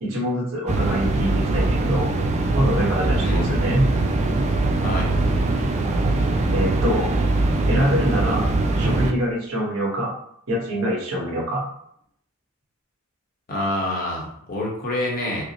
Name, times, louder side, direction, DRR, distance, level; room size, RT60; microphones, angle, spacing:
voice 1, 0.0-2.1 2.5-3.8 6.5-7.1 7.7-8.5 8.7-10.1 10.5-11.6, equal, 70° right, -4 dB, 1.3 m, -24 dB
sound 1, 0.7-9.1, right 2 dB, 30° right, 0.4 m, -22 dB
voice 2, 13.5-15.4, left 1 dB, 45° left, -2 dB, 0.9 m, -27 dB
4.8 x 2.0 x 2.9 m, 0.69 s
head